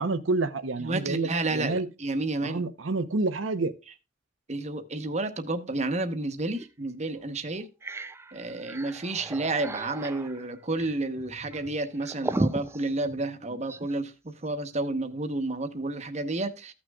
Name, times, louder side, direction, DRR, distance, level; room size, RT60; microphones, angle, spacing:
voice 1, 0.0-1.9 2.4-3.7, right 3 dB, 85° right, 0.8 m, -28 dB
voice 2, 0.8-2.6 4.5-7.7 8.3-16.7, right 2 dB, 35° right, 1.0 m, -31 dB
sound 1, 6.6-6.7 7.2-7.3 7.6-14.0, right 2 dB, 15° right, 0.4 m, -36 dB
15.0 x 6.2 x 2.3 m
head